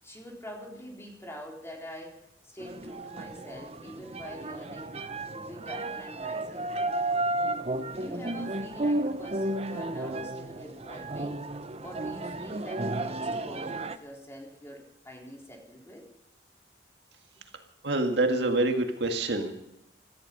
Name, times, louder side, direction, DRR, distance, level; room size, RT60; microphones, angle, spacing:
voice 1, 0.0-4.9 5.3-6.7 7.9-11.4 11.8-16.1, equal, 15° left, -1 dB, 4.0 m, -45 dB
sound 1, 2.6-14.0, right 2 dB, 35° right, 0.8 m, -33 dB
voice 2, 17.8-19.5, right 2 dB, 65° right, 4 dB, 2.0 m, -26 dB
17.5 x 14.0 x 5.5 m, 0.85 s
head